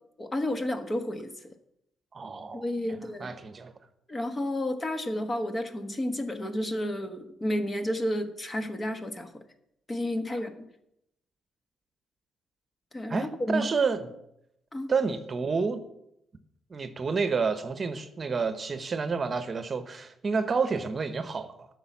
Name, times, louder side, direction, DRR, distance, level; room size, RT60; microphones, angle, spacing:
voice 1, 0.2-1.3 2.5-3.3 4.1-9.4 9.9-10.5 12.9-13.7 14.7-14.9, left 1 dB, 25° left, 1.2 m, -31 dB
voice 2, 2.1-3.7 13.1-14.1 14.9-15.8 16.7-21.7, right 5 dB, 35° right, 1.0 m, -29 dB
9.8 x 6.2 x 7.2 m
cardioid pair, 90°, 0 cm